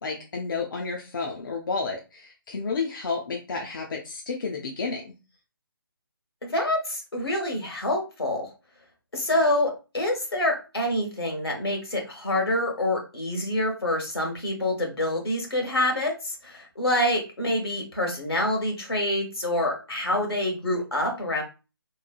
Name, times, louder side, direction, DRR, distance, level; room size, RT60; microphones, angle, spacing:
voice 1, 0.0-5.1, left 4 dB, 60° left, 0 dB, 0.5 m, -31 dB
voice 2, 6.4-8.5 9.1-21.4, left 1 dB, 90° left, 1 dB, 1.2 m, -26 dB
3.1 x 2.1 x 2.3 m, 0.30 s
figure-of-eight pair, 155°, 12 cm